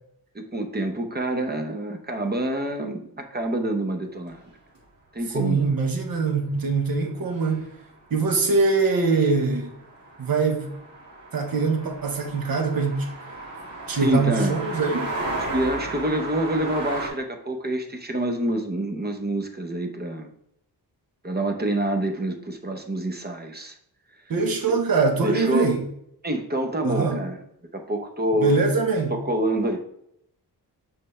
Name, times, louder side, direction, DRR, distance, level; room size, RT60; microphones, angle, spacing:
voice 1, 0.3-3.0 3.3-4.4 5.1-5.7 13.9-14.6 15.5-20.3 21.2-23.8 25.2-25.7 26.2-27.4 27.7-28.6 29.1-29.8, right 1 dB, 25° right, 4 dB, 0.7 m, -27 dB
sound 1, 4.3-4.4 4.8-4.9 7.4-7.5 7.8-8.0 8.3-17.1, right 2 dB, 80° right, 2.1 m, -34 dB
voice 2, 5.3-7.7 8.1-9.7 10.2-10.7 11.3-13.1 13.9-15.1 24.3-25.8 26.8-27.2 28.4-29.2, right 4 dB, 55° right, 3 dB, 1.1 m, -23 dB
7.6 x 4.3 x 3.2 m, 0.74 s
wide cardioid pair, 160°, 41 cm